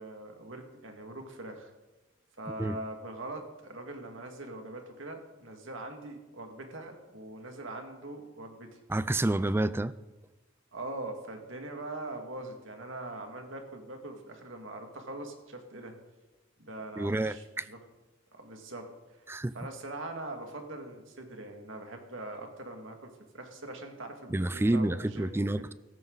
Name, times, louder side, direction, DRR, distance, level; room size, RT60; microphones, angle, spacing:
voice 1, 0.0-1.7 2.4-8.8 10.7-15.9 16.6-17.8 18.3-19.2 19.5-25.5, right 2 dB, 70° right, 4 dB, 2.1 m, -42 dB
voice 2, 2.5-2.8 8.9-9.9 17.0-17.7 19.3-19.5 24.3-25.7, right 1 dB, 10° right, 15 dB, 0.3 m, -29 dB
16.0 x 13.5 x 4.0 m, 1.1 s
head